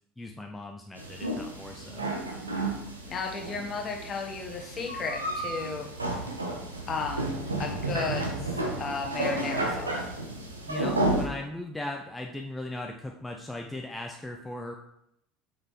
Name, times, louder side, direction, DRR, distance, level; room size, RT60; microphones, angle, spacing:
voice 1, 0.2-2.2 10.7-14.7, left 1 dB, 10° left, 2 dB, 0.5 m, -38 dB
sound 1, 1.0-11.3, right 2 dB, 85° right, 0.8 m, -32 dB
voice 2, 3.0-5.9 6.9-7.3 7.6-8.5 8.8-10.0, left 4 dB, 35° left, 2 dB, 1.2 m, -34 dB
5.7 x 5.4 x 3.1 m, 0.77 s
figure-of-eight pair, 70°, 0 cm